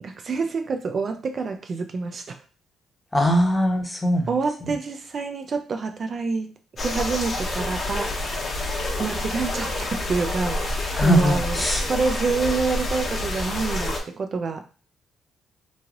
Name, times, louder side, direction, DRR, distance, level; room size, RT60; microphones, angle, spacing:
voice 1, 0.0-2.4 4.3-6.5 6.8-8.1 9.0-14.7, right 4 dB, 45° right, 6 dB, 0.3 m, -27 dB
voice 2, 3.1-4.3 4.6-4.7 10.9-11.9, equal, 15° left, 2 dB, 0.8 m, -21 dB
sound 1, 6.8-14.0, left 2 dB, 45° left, 0.9 m, -28 dB
3.0 x 2.7 x 2.5 m, 0.36 s
cardioid pair, 90°, 0 cm